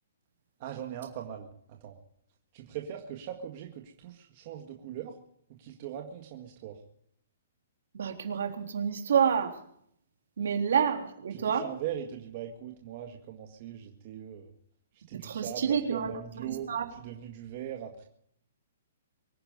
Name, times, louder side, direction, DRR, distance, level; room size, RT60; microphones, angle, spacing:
voice 1, 0.6-2.0 2.5-5.1 5.5-6.8 11.3-14.5 15.1-16.7 17.0-18.1, right 10 dB, 30° right, 2 dB, 1.8 m, -40 dB
voice 2, 7.9-9.6 10.4-11.6 15.1-16.9, right 7 dB, 65° right, 4 dB, 3.6 m, -29 dB
23.5 x 10.5 x 5.4 m, 0.69 s
hypercardioid pair, 175°, 0 cm